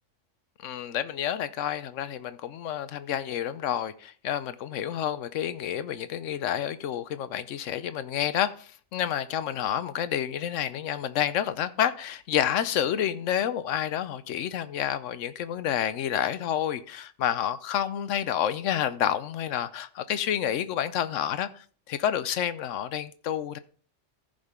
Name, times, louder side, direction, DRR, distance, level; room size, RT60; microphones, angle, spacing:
voice 1, 0.6-23.6, left 10 dB, 85° left, 1.0 m, -29 dB
14.5 x 5.1 x 3.6 m
omnidirectional pair, 1.2 m